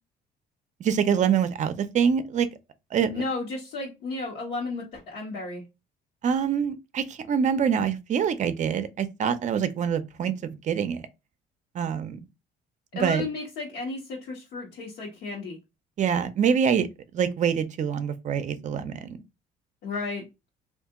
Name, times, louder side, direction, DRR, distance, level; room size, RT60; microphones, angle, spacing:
voice 1, 0.8-2.5 2.9-3.2 6.2-11.0 11.7-12.2 12.9-13.2 16.0-16.9 17.1-19.2, right 7 dB, 45° right, 0.5 m, -25 dB
voice 2, 3.1-5.6 12.9-15.6 19.8-20.2, left 3 dB, 75° left, 1.1 m, -33 dB
2.7 x 2.5 x 3.6 m
cardioid pair, 110°, 17 cm